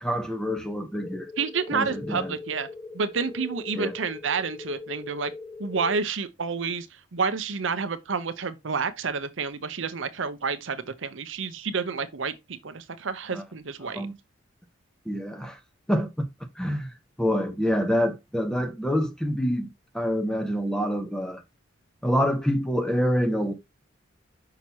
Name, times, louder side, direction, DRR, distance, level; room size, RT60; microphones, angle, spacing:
voice 1, 0.0-1.3 1.7-2.4 3.7-3.9 13.3-13.4 13.8-14.1 15.1-15.6 15.9-16.3 16.6-16.9 17.2-19.7 19.9-21.4 22.0-23.5, equal, 5° left, 0.9 m, -26 dB
sound 1, 1.0-6.0, left 3 dB, 30° left, 1.2 m, -40 dB
voice 2, 1.4-2.7 2.9-5.3 5.6-6.9 7.1-14.1, right 5 dB, 70° right, 0.7 m, -29 dB
6.1 x 5.8 x 2.8 m
head